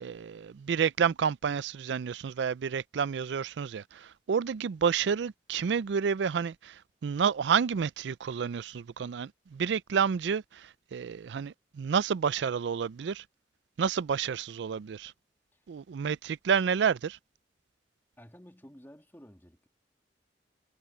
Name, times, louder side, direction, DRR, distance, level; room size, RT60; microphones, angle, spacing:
voice 1, 0.0-13.2 13.8-15.1 15.7-17.2, right 6 dB, 80° right, 0.4 m, -30 dB
voice 2, 18.2-19.7, equal, 10° left, 2.6 m, -53 dB
head